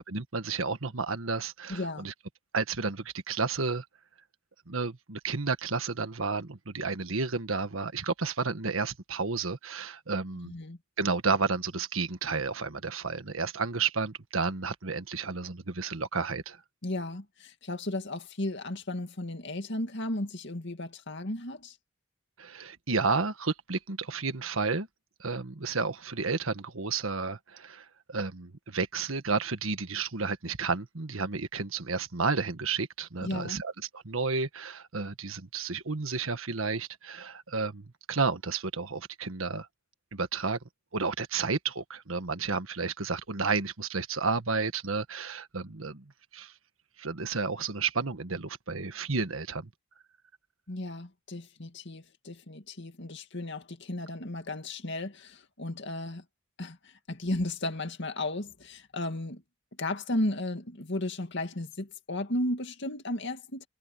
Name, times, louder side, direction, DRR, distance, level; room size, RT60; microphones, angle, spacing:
voice 1, 0.1-2.1 2.5-3.8 4.7-10.5 11.0-16.6 22.4-24.9 25.2-39.7 40.1-40.6 40.9-46.0 46.3-46.5 47.0-49.7, right 4 dB, 85° right, 1.5 m, -31 dB
voice 2, 1.7-2.1 10.4-10.8 16.8-21.8 33.2-33.6 50.7-56.2 56.6-59.4 59.8-63.7, left 1 dB, 60° left, 2.2 m, -34 dB
head